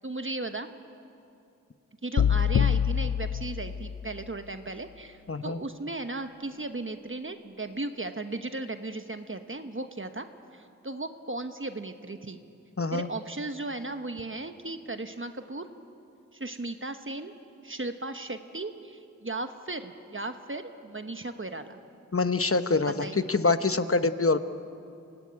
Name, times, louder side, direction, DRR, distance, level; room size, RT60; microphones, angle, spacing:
voice 1, 0.0-0.7 2.0-10.3 10.5-12.4 12.9-15.7 16.3-17.3 17.6-21.8 23.0-23.3, right 2 dB, 40° right, 8 dB, 1.2 m, -36 dB
sound 1, 2.2-4.3, left 8 dB, 60° left, 0.5 m, -26 dB
voice 2, 5.3-5.6 12.8-13.1 22.1-24.4, left 3 dB, 45° left, 11 dB, 1.0 m, -25 dB
25.0 x 17.5 x 9.6 m, 2.6 s
wide cardioid pair, 45°, 32 cm